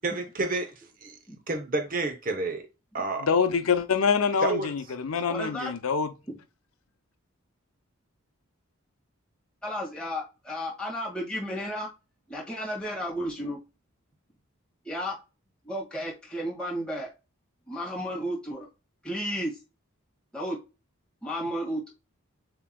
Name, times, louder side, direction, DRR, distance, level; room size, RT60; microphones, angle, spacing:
voice 1, 0.0-0.7 1.0-1.2 1.5-2.7 2.9-3.3 4.4-4.7, right 3 dB, 40° right, 0.7 m, -29 dB
voice 2, 3.2-6.1, left 6 dB, 80° left, 0.6 m, -25 dB
voice 3, 5.3-5.7 9.6-11.9 12.3-13.6 14.8-15.1 15.6-17.1 17.7-18.7 19.0-19.5 20.3-20.6 21.2-21.9, equal, 5° left, 1.7 m, -33 dB
7.1 x 2.9 x 2.2 m
head